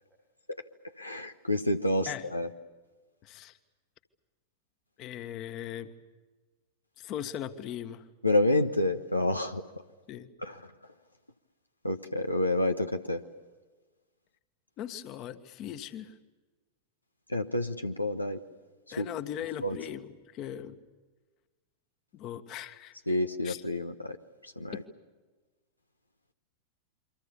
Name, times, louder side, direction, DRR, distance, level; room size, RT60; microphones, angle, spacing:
voice 1, 1.0-2.5 8.2-9.6 10.4-10.6 11.8-13.2 17.3-18.4 19.0-19.1 19.6-19.8 23.1-24.2 24.6-24.7, left 1 dB, 85° left, 6 dB, 1.1 m, -28 dB
voice 2, 3.2-3.6 5.0-5.9 7.0-8.0 10.1-10.3 14.8-16.1 18.9-20.8 22.1-23.2 23.4-23.6, left 10 dB, 40° left, 9 dB, 1.6 m, -39 dB
28.5 x 25.0 x 7.1 m, 1.3 s
figure-of-eight pair, 90°, 0 cm